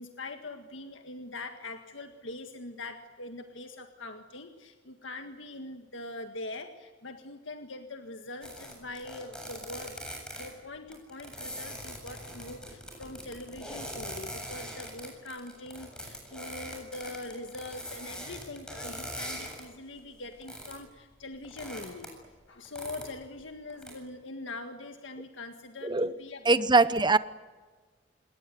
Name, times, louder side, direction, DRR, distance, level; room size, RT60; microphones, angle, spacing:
voice 1, 0.0-22.1 22.5-26.9, left 2 dB, 75° left, 1.8 m, -43 dB
sound 1, 8.4-10.5 10.9-19.7 20.0-20.8 21.1-22.3 22.6-23.4 23.7-23.9, equal, 5° left, 7.6 m, -41 dB
voice 2, 26.5-27.2, right 3 dB, 25° right, 1.0 m, -22 dB
27.5 x 21.0 x 9.4 m
head